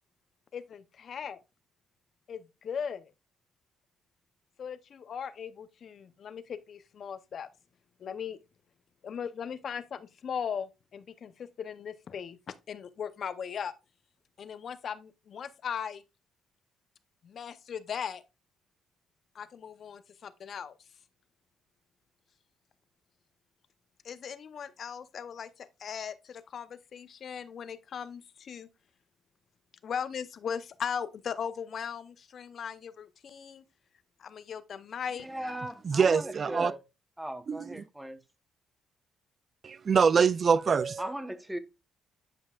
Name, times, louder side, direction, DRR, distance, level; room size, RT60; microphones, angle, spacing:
voice 1, 0.5-1.4 2.3-3.1 4.6-7.5 8.0-8.4 9.0-13.7 14.4-16.0 17.2-18.2 19.3-20.7 24.0-28.7 29.8-33.6 34.2-35.3, left 7 dB, 55° left, 0.6 m, -38 dB
voice 2, 35.2-36.8 37.2-38.2 41.0-41.6, right 1 dB, 5° right, 0.9 m, -38 dB
voice 3, 35.8-36.7 37.5-37.8 39.6-41.1, right 6 dB, 45° right, 0.3 m, -25 dB
9.7 x 5.3 x 2.3 m
cardioid pair, 90°, 0 cm